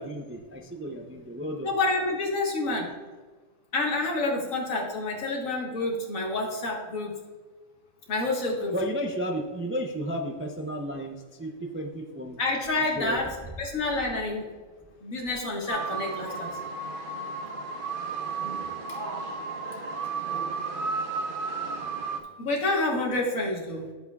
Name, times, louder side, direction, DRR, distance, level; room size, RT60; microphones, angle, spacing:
voice 1, 0.0-1.7 8.7-12.4 13.0-13.3, equal, 20° right, 2 dB, 0.4 m, -33 dB
voice 2, 1.6-2.9 3.7-7.2 8.1-8.7 12.4-14.5 15.0-16.5 22.4-23.9, left 2 dB, 80° left, 0 dB, 1.9 m, -28 dB
sound 1, 15.7-22.2, right 4 dB, 45° right, 1.0 m, -33 dB
11.0 x 7.5 x 2.3 m, 1.4 s
omnidirectional pair, 1.4 m